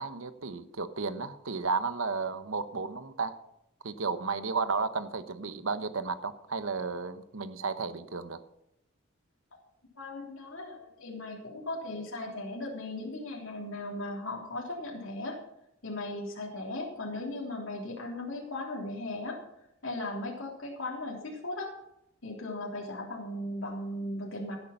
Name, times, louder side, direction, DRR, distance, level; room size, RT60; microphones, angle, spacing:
voice 1, 0.0-3.4 3.8-8.4, right 4 dB, 70° right, 11 dB, 1.0 m, -33 dB
voice 2, 10.0-15.4 15.8-19.4 19.8-21.7 22.2-24.6, left 2 dB, 65° left, -1 dB, 3.3 m, -37 dB
15.5 x 8.5 x 5.8 m, 0.80 s
head